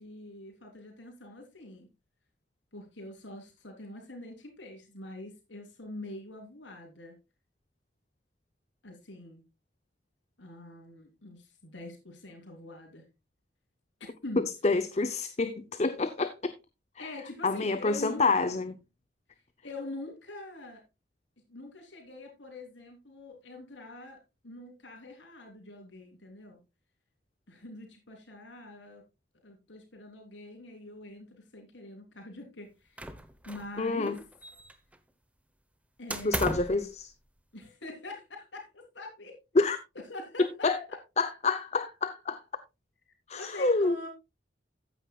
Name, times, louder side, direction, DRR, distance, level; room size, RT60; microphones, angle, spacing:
voice 1, 0.0-1.9 2.7-7.2 8.8-9.4 10.4-13.1 14.0-14.5 17.0-18.4 19.6-20.8 21.5-26.6 27.5-29.0 29.4-33.0 33.4-34.3 36.0-36.8 37.5-39.4 40.1-41.0 43.3-44.1, left 2 dB, 80° left, 3.5 m, -44 dB
voice 2, 14.6-16.5 17.4-18.7 33.8-34.1 36.2-37.1 39.6-39.8 40.6-40.8 41.2-42.4 43.3-44.0, left 3 dB, 35° left, 0.6 m, -27 dB
sound 1, 33.0-33.8 34.0-35.0 36.1-36.8, right 1 dB, 5° right, 0.8 m, -36 dB
14.0 x 9.3 x 2.3 m
head